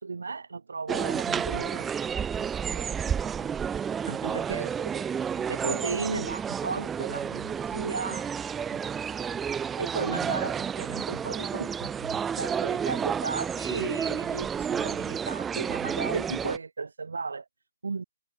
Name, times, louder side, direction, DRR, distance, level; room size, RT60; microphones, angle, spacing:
voice 1, 0.0-1.9 4.1-5.0 5.5-8.3 8.7-8.8 9.8-17.4 17.8-18.0, right 4 dB, 70° right, 1.5 m, -35 dB
sound 1, 0.9-16.6, right 7 dB, 10° right, 0.9 m, -31 dB
voice 2, 2.3-4.8 12.7-13.0, right 17 dB, 30° right, 3.8 m, -51 dB
figure-of-eight pair, 150°, 0 cm